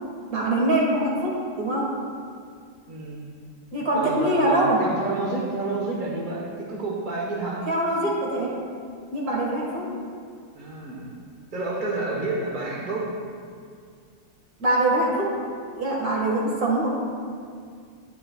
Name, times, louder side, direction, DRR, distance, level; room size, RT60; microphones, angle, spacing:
voice 1, 0.3-1.9 3.7-4.9 7.7-8.6 9.1-9.9 14.6-15.3 15.7-16.9, right 1 dB, 50° right, -3 dB, 2.2 m, -23 dB
voice 2, 2.9-3.2 3.9-7.6 10.5-11.1 11.5-13.1, right 2 dB, 30° right, -3 dB, 1.1 m, -29 dB
10.5 x 9.8 x 2.4 m, 2.1 s
omnidirectional pair, 2.1 m